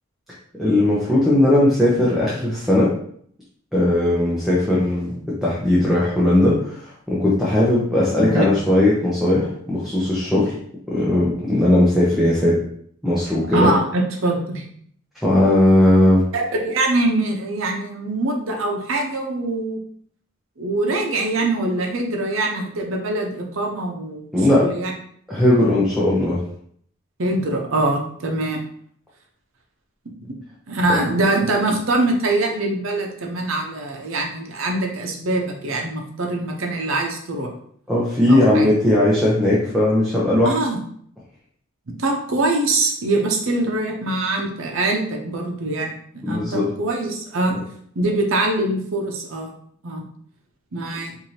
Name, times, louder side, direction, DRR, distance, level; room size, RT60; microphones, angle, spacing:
voice 1, 0.6-2.9 3.7-10.5 10.9-12.6 13.0-13.7 15.2-16.2 24.3-24.7 25.3-26.4 30.9-31.0 37.9-40.5 46.2-46.7, left 1 dB, ahead, -7 dB, 0.7 m, -18 dB
voice 2, 13.5-14.6 16.3-19.8 20.6-24.9 27.2-28.6 30.2-30.3 30.7-37.5 38.3-38.7 40.4-40.8 41.9-47.6 48.0-49.5 49.8-50.0 50.7-51.2, right 2 dB, 70° right, 2 dB, 0.7 m, -23 dB
4.7 x 2.6 x 2.8 m, 0.62 s
head